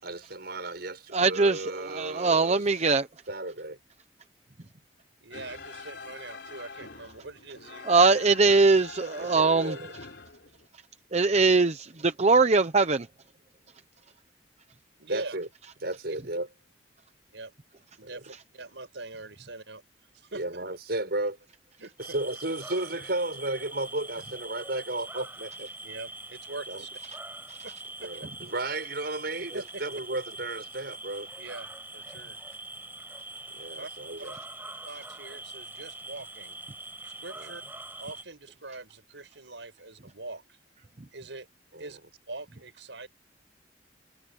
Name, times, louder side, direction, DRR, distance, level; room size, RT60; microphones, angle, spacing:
voice 1, 0.0-2.7 3.3-3.8 9.1-9.9 15.1-15.5 15.8-16.5 18.0-18.1 20.3-21.4 22.0-25.7 26.7-26.8 28.0-31.3 33.5-34.4 37.4-37.5 41.7-41.9, right 2 dB, 60° right, 7.0 m, -34 dB
voice 2, 1.1-3.1 7.9-9.7 11.1-13.1, right 4 dB, 35° right, 0.8 m, -22 dB
voice 3, 5.2-8.1 15.0-15.4 16.1-16.2 17.3-17.5 18.0-19.8 20.1-20.6 21.8-21.9 25.8-26.9 27.6-27.7 28.0-28.3 29.4-29.6 31.4-32.4 33.8-33.9 34.2-34.3 34.9-36.6 37.0-37.6 38.0-40.6 41.1-41.5 41.8-42.0 42.3-43.1, right 3 dB, 85° right, 5.4 m, -43 dB
sound 1, 5.3-10.7, left 4 dB, 75° left, 3.4 m, -45 dB
sound 2, 22.0-38.2, right 2 dB, 10° right, 6.7 m, -43 dB
head